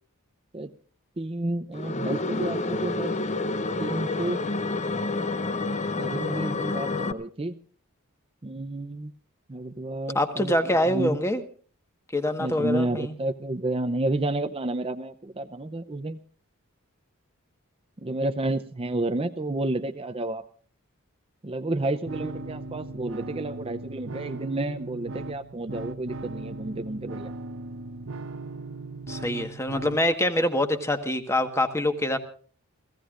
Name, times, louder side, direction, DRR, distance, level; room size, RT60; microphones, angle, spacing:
voice 1, 1.2-3.1 3.8-4.4 6.0-7.6 8.4-9.1 9.5-11.2 12.4-16.2 18.0-20.4 21.4-27.3, right 2 dB, 25° right, 8 dB, 0.6 m, -30 dB
sound 1, 1.7-7.1, left 3 dB, 30° left, 0.7 m, -29 dB
voice 2, 10.1-11.4 12.1-13.1 29.1-32.2, left 1 dB, 10° left, 7 dB, 1.4 m, -25 dB
sound 2, 22.1-30.1, right 2 dB, 60° right, 1.0 m, -38 dB
29.5 x 15.5 x 2.5 m, 0.43 s
head